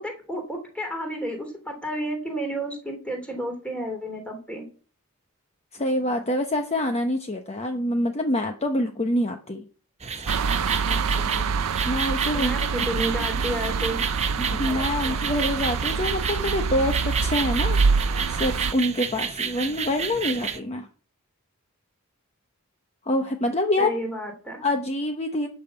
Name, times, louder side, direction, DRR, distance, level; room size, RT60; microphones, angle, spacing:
voice 1, 0.0-4.7 12.3-14.0 23.8-24.6, right 1 dB, 5° left, 3 dB, 3.0 m, -31 dB
voice 2, 5.7-9.6 10.9-11.6 11.8-12.6 14.4-17.8 18.3-20.9 23.0-23.9 24.6-25.5, left 1 dB, 30° left, 5 dB, 1.0 m, -26 dB
sound 1, 10.0-20.6, right 6 dB, 30° right, 1.0 m, -31 dB
sound 2, 10.3-18.7, right 5 dB, 80° right, 0.6 m, -26 dB
12.0 x 5.8 x 8.1 m, 0.40 s
head